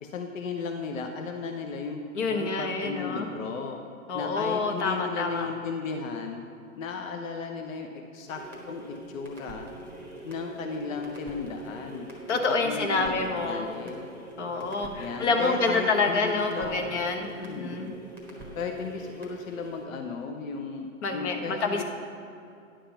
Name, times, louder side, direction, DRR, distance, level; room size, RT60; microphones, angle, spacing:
voice 1, 0.0-3.8 4.1-6.5 6.8-9.7 10.2-14.2 15.0-16.9 17.5-18.0 18.5-21.8, left 4 dB, 70° left, 4 dB, 0.8 m, -35 dB
voice 2, 2.1-3.3 4.1-5.5 12.3-13.7 14.4-17.9 21.0-21.8, left 3 dB, 55° left, 4 dB, 1.2 m, -27 dB
sound 1, 8.3-19.9, right 1 dB, 5° left, 1.0 m, -44 dB
10.0 x 3.6 x 7.0 m, 2.5 s
hypercardioid pair, 150°, 41 cm